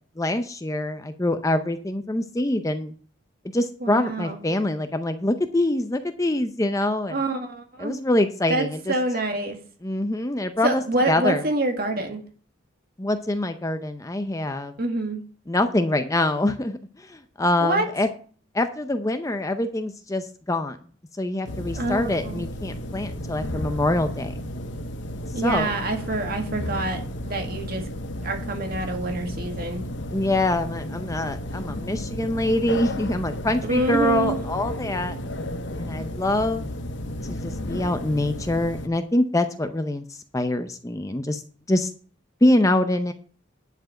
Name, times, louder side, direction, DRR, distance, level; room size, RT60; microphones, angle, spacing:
voice 1, 0.2-2.9 3.5-7.1 7.8-8.9 9.8-11.4 13.0-14.7 15.5-18.1 18.5-20.8 21.2-24.3 25.4-25.7 30.1-35.2 35.8-36.7 37.3-41.4 41.7-41.9 42.4-43.1, left 1 dB, 15° left, 8 dB, 0.6 m, -25 dB
voice 2, 3.8-4.4 7.1-8.0 8.5-9.6 10.6-12.2 14.8-15.2 17.6-17.9 21.7-22.5 25.3-27.8 28.2-29.9 33.7-34.4, right 2 dB, 45° right, 4 dB, 1.9 m, -26 dB
sound 1, 21.4-38.9, left 1 dB, 60° left, 0.8 m, -33 dB
10.5 x 4.7 x 7.5 m, 0.43 s
head